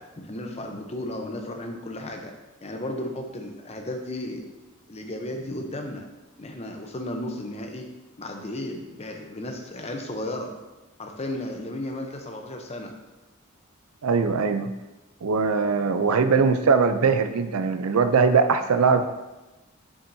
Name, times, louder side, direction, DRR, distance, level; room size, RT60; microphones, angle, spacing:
voice 1, 0.0-2.3 2.6-4.5 4.9-6.1 6.4-7.9 8.2-10.5 11.0-12.9, left 1 dB, 30° left, 3 dB, 0.8 m, -34 dB
voice 2, 14.0-14.7 15.2-19.1, right 5 dB, 85° right, 9 dB, 0.5 m, -21 dB
7.2 x 6.2 x 2.7 m, 1.1 s
head